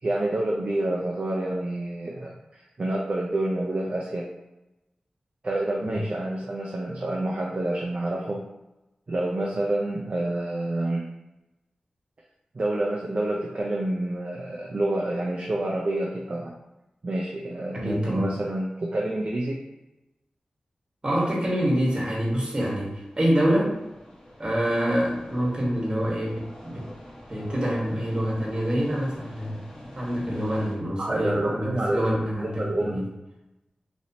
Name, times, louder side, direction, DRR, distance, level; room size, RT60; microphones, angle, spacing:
voice 1, 0.0-4.3 5.4-8.4 9.1-11.1 12.5-16.5 17.0-19.6 31.0-32.1 32.4-33.1, right 1 dB, 50° right, -3 dB, 0.5 m, -28 dB
voice 2, 17.7-18.3 21.0-23.8 24.4-26.9 27.3-29.6 29.9-33.1, equal, 35° right, -4 dB, 1.3 m, -26 dB
sound 1, 22.4-30.7, left 1 dB, 25° left, 1.0 m, -46 dB
3.1 x 2.8 x 2.8 m, 0.98 s
cardioid pair, 50°, 2 cm